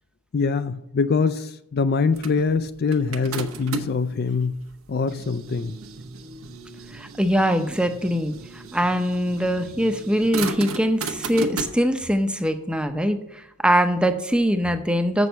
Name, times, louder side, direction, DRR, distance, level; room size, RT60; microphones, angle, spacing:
voice 1, 0.3-4.6 4.9-5.8, left 4 dB, 45° left, 11 dB, 0.4 m, -23 dB
sound 1, 2.2-4.1 4.7-11.7, right 4 dB, 70° right, 1.0 m, -35 dB
voice 2, 6.9-15.3, equal, 5° right, 7 dB, 0.6 m, -22 dB
7.4 x 6.2 x 6.8 m, 0.80 s
head